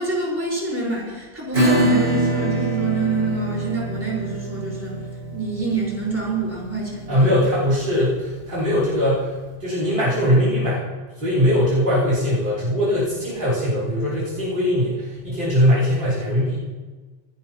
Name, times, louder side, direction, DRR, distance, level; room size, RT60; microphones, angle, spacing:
voice 1, 0.0-5.0 5.3-7.3, right 3 dB, 15° right, -5 dB, 5.0 m, -26 dB
Acoustic guitar / Strum, 1.5-8.7, right 1 dB, 70° right, 6.0 m, -25 dB
voice 2, 7.1-9.3 9.6-10.9 11.2-16.6, equal, 50° right, -10 dB, 3.7 m, -20 dB
27.0 x 11.5 x 3.0 m, 1.3 s
omnidirectional pair, 1.1 m